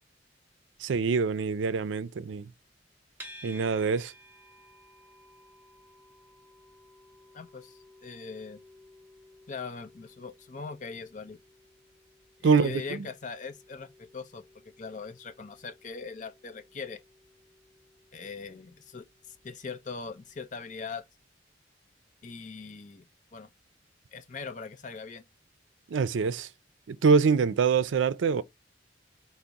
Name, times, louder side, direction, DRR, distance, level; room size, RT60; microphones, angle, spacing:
voice 1, 0.8-2.5 3.4-4.1 12.4-13.0 25.9-26.5 26.9-28.4, right 5 dB, 80° right, 0.4 m, -25 dB
sound 1, 3.2-20.4, equal, 10° right, 1.5 m, -56 dB
voice 2, 7.3-8.6 9.5-11.4 12.4-14.4 14.8-17.0 18.1-21.0 22.2-23.0 23.3-23.5 24.1-25.2, left 4 dB, 40° left, 0.5 m, -41 dB
4.6 x 2.0 x 3.9 m
head